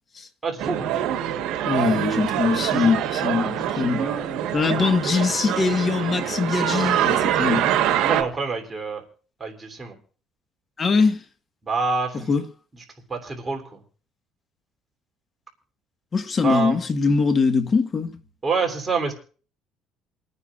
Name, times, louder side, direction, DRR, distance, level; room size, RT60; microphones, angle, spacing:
voice 1, 0.4-0.8 3.2-3.5 4.0-4.3 4.7-4.8 8.1-9.0 9.4-9.9 11.6-12.2 13.1-13.8 16.4-16.8 18.4-19.1, right 4 dB, 20° right, 3.3 m, -27 dB
sound 1, 0.6-8.2, right 10 dB, 75° right, 1.4 m, -24 dB
voice 2, 1.6-4.1 4.5-7.7 10.8-11.2 12.1-12.4 16.1-18.2, left 4 dB, 35° left, 1.5 m, -22 dB
28.0 x 9.8 x 2.5 m
cardioid pair, 110°, 0 cm